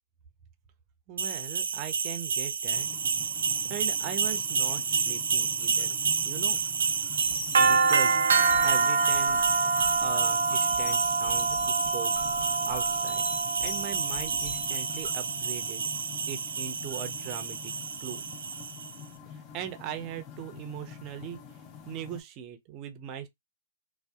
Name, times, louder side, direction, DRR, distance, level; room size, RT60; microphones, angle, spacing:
voice 1, 1.1-2.9 3.7-6.0 6.2-6.6 7.6-9.7 10.0-13.2 13.6-15.9 16.3-17.7 18.0-18.2 19.3-21.4 21.9-23.3, right 9 dB, 35° right, 0.5 m, -40 dB
sound 1, 1.2-18.9, right 5 dB, 80° right, 0.5 m, -27 dB
sound 2, 2.7-22.2, left 7 dB, 30° left, 0.6 m, -47 dB
sound 3, 7.2-15.1, left 4 dB, 65° left, 1.6 m, -40 dB
2.6 x 2.1 x 2.2 m
hypercardioid pair, 135°, 0 cm